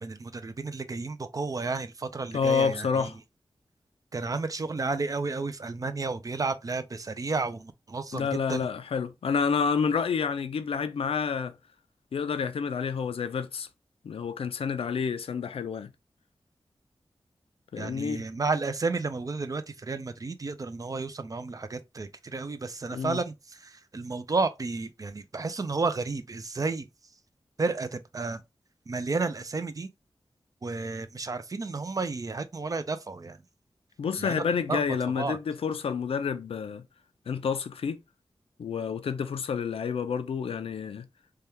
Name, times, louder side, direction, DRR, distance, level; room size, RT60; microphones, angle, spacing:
voice 1, 0.0-3.1 4.1-8.7 17.8-26.9 27.6-28.4 28.9-29.9 30.6-33.4 34.2-34.8 35.2-35.4, right 3 dB, 40° right, 0.4 m, -32 dB
voice 2, 2.3-3.2 8.1-11.5 12.1-13.7 14.0-15.9 17.7-18.2 22.9-23.2 34.0-36.8 37.3-38.0 38.6-41.1, left 6 dB, 90° left, 0.4 m, -29 dB
3.3 x 2.3 x 2.8 m
wide cardioid pair, 75°, 9 cm